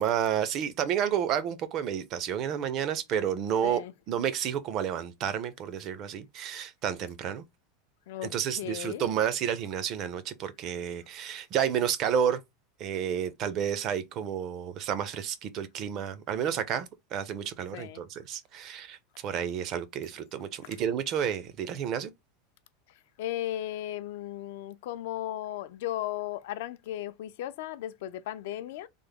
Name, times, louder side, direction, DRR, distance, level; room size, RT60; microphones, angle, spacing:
voice 1, 0.0-3.8 4.1-7.4 8.2-12.4 12.8-19.0 19.2-22.1, right 9 dB, 35° right, 0.4 m, -30 dB
voice 2, 8.1-9.1 17.7-18.0 20.6-20.7 23.2-28.9, left 13 dB, 60° left, 0.4 m, -36 dB
3.3 x 2.0 x 3.4 m
supercardioid pair, 170°, 0 cm